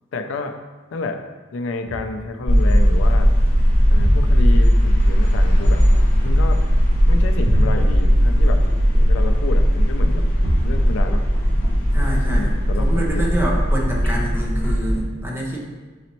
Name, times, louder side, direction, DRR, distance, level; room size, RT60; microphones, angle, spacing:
voice 1, 0.1-0.6 0.9-1.2 1.5-3.3 3.9-5.8 6.2-6.6 7.1-8.6 9.1-10.2 10.6-11.2 12.3-13.2, left 3 dB, 75° left, 6 dB, 0.4 m, -29 dB
sound 1, 1.8-6.8 7.4-9.8 10.4-12.4 12.9-13.0, equal, 55° right, 0.7 m, -31 dB
sound 2, 2.5-15.0, equal, 45° left, 1.0 m, -17 dB
sound 3, 5.6-14.7, left 1 dB, 10° left, 1.4 m, -43 dB
voice 2, 11.9-15.6, right 1 dB, 10° right, -3 dB, 0.7 m, -26 dB
4.1 x 3.9 x 3.0 m, 1.3 s
head